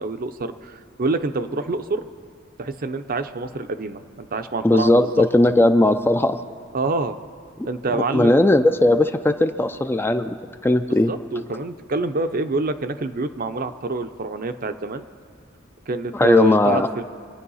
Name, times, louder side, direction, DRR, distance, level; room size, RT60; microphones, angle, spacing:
voice 1, 0.0-2.0 2.6-5.2 6.7-7.2 7.6-8.5 11.1-15.0 15.9-17.0, right 2 dB, 45° right, 9 dB, 0.6 m, -26 dB
voice 2, 4.6-6.4 7.6-7.7 7.9-10.4 10.6-11.1 16.1-16.9, left 1 dB, 10° left, 8 dB, 0.4 m, -18 dB
26.0 x 9.2 x 5.6 m, 2.1 s
head